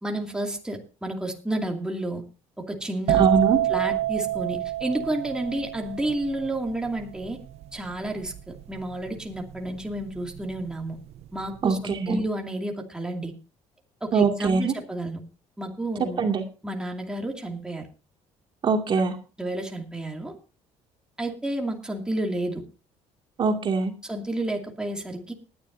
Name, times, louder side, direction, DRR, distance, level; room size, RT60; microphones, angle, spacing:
voice 1, 0.0-2.2 2.6-3.3 3.7-7.4 7.7-11.0 11.3-13.3 14.0-15.2 15.6-16.2 16.6-17.8 19.4-20.3 21.2-22.6 24.0-25.3, right 1 dB, 5° right, 1 dB, 2.5 m, -31 dB
voice 2, 3.1-3.6 11.6-12.2 14.1-14.7 16.2-16.4 18.6-19.2 23.4-23.9, right 5 dB, 40° right, 3 dB, 2.4 m, -22 dB
sound 1, 3.1-10.6 10.9-11.4, right 14 dB, 60° right, 0.7 m, -27 dB
19.5 x 11.0 x 2.7 m, 0.33 s
cardioid pair, 130°, 12 cm